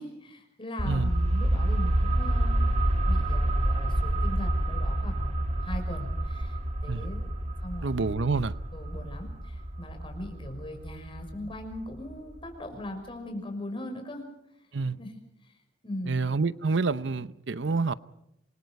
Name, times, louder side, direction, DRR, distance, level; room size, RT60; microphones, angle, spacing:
voice 1, 0.0-2.7 3.0-7.3 7.6-8.2 8.7-14.2 15.0-15.5 15.8-16.2, left 1 dB, 30° left, 6.0 m, -40 dB
sound 1, 0.8-12.2 12.4-12.5, right 1 dB, 35° right, 2.3 m, -28 dB
voice 2, 7.8-8.6 14.7-15.0 16.1-17.9, right 4 dB, 75° right, 0.7 m, -28 dB
27.0 x 23.0 x 5.4 m
head